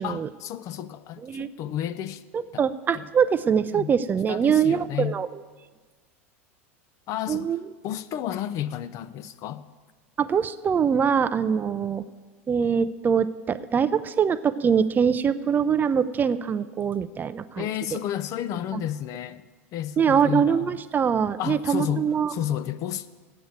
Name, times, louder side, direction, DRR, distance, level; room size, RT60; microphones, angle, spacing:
voice 1, 0.0-2.2 2.5-2.6 2.9-3.1 3.7-3.9 4.3-5.2 7.1-7.5 7.8-9.6 17.5-19.4 19.7-20.8 21.4-23.1, left 11 dB, 45° left, 0.5 m, -31 dB
voice 2, 2.3-5.3 7.3-7.6 10.2-12.0 12.5-17.7 18.7-18.8 20.0-22.3, right 7 dB, 25° right, 0.4 m, -23 dB
8.7 x 7.9 x 8.2 m
hypercardioid pair, 105°, 7 cm